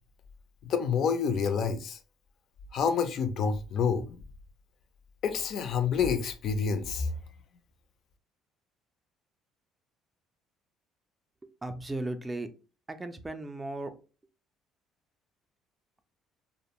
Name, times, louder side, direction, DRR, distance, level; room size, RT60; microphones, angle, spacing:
voice 1, 0.7-2.0 2.7-4.2 5.2-7.1, left 6 dB, 60° left, 0.4 m, -28 dB
voice 2, 11.4-12.5 12.9-13.9, right 2 dB, 15° right, 0.4 m, -36 dB
2.5 x 2.0 x 2.9 m
cardioid pair, 110°, 0 cm